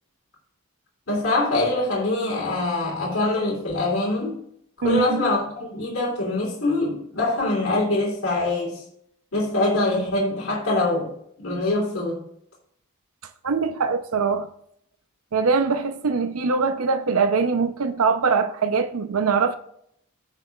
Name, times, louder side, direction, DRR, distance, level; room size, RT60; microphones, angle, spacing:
voice 1, 1.1-4.3 4.8-8.8 9.3-11.1 11.4-12.2, left 2 dB, 70° left, 2.9 m, -24 dB
voice 2, 4.8-5.2 13.4-14.5 15.3-19.5, right 5 dB, 85° right, 0.6 m, -22 dB
14.5 x 6.8 x 2.4 m
head